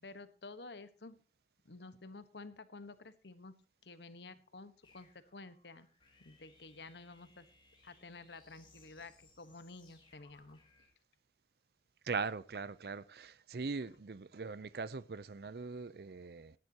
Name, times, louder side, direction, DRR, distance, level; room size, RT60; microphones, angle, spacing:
voice 1, 0.0-1.2 1.6-3.5 3.8-5.9 6.2-7.5 7.8-10.6, left 3 dB, 80° left, 1.2 m, -51 dB
sound 1, 4.8-10.9, left 3 dB, 30° left, 4.1 m, -66 dB
voice 2, 12.1-16.5, right 4 dB, 65° right, 0.5 m, -41 dB
18.5 x 11.0 x 2.9 m
head